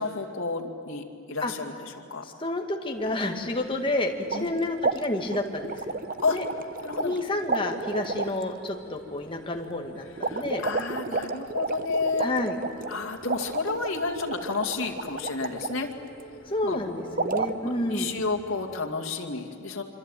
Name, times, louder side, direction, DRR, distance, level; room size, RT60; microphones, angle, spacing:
voice 1, 0.0-2.2 4.3-4.5 6.2-6.4 6.8-7.2 10.3-12.3 12.9-15.9 16.6-16.8 17.6-19.8, left 4 dB, 90° left, 2 dB, 2.4 m, -31 dB
voice 2, 2.2-6.0 6.3-6.4 7.0-10.6 12.2-12.6 16.5-18.1, left 1 dB, 25° left, 3 dB, 2.0 m, -30 dB
sound 1, 2.9-18.8, right 2 dB, 65° left, 7.6 m, -48 dB
sound 2, 4.3-4.5 4.8-7.2 7.4-8.4 10.2-15.8 17.1-17.5, right 3 dB, 45° right, 0.9 m, -31 dB
25.5 x 25.5 x 9.2 m, 2.3 s
head